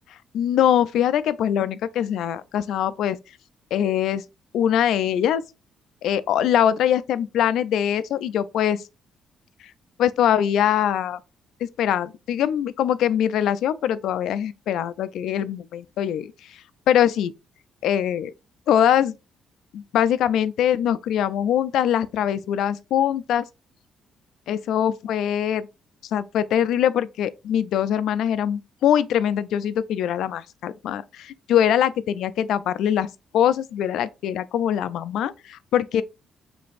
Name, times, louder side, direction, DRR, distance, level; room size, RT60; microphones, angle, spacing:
voice 1, 0.3-3.2 3.7-4.2 4.5-5.4 6.0-8.8 10.0-11.2 11.8-16.3 16.9-17.3 17.8-18.3 18.7-19.2 19.7-23.4 24.5-25.7 26.1-33.1 33.3-36.0, left 10 dB, 80° left, 0.4 m, -22 dB
5.0 x 3.3 x 2.5 m
cardioid pair, 90°, 0 cm